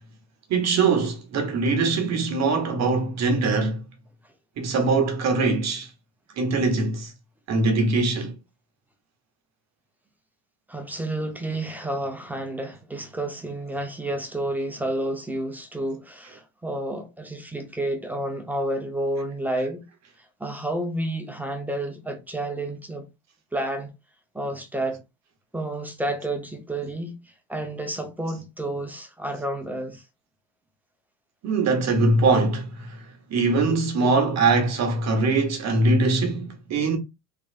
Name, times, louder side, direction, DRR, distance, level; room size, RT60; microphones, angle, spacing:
voice 1, 0.5-3.8 4.6-5.9 6.4-7.1 7.5-8.3 31.4-37.0, right 3 dB, 40° right, 1.1 m, -22 dB
voice 2, 10.7-19.8 20.2-23.1 23.5-23.9 24.3-25.0 25.5-30.0, right 1 dB, 5° right, 0.8 m, -30 dB
3.5 x 3.1 x 2.5 m
supercardioid pair, 110°, 41 cm